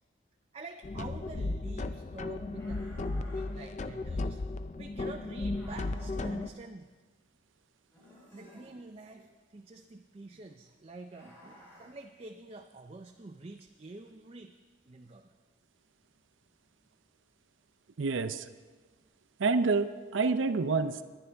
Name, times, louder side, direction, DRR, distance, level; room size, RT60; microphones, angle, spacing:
voice 1, 0.5-4.4 4.8-6.9 8.3-14.6 14.9-15.3, right 2 dB, 30° right, 4 dB, 0.5 m, -47 dB
sound 1, 0.8-6.5, left 2 dB, 40° left, 0.4 m, -35 dB
sound 2, 2.6-3.5 5.5-6.3 7.9-8.7 11.1-11.9, equal, 10° left, 5.0 m, -54 dB
voice 2, 18.0-18.5 19.4-21.0, right 4 dB, 90° right, 11 dB, 0.6 m, -28 dB
21.0 x 10.0 x 3.5 m, 1.3 s
head